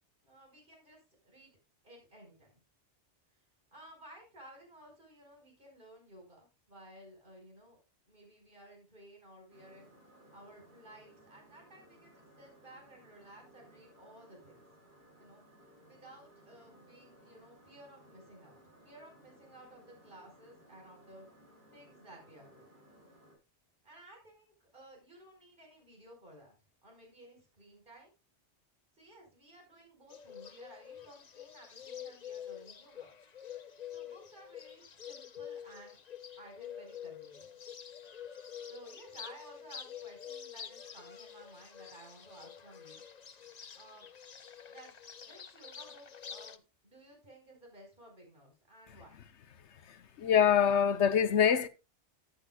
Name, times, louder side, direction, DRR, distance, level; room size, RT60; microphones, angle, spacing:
voice 1, 0.2-1.6 1.8-2.6 3.7-7.8 8.1-9.9 10.3-14.6 15.2-15.4 15.8-18.6 18.8-21.3 21.7-22.7 23.8-26.5 26.8-28.1 29.0-33.1 33.9-36.0 36.4-37.5 38.7-43.0 43.7-44.1 44.7-44.9 45.2-49.2, right 1 dB, 45° right, 5.1 m, -56 dB
sound 1, 9.5-23.4, right 1 dB, 65° right, 5.2 m, -61 dB
Bird, 30.1-46.6, left 8 dB, 40° left, 0.8 m, -47 dB
voice 2, 49.9-51.7, left 8 dB, 75° left, 1.1 m, -25 dB
14.0 x 9.9 x 2.3 m
omnidirectional pair, 1.2 m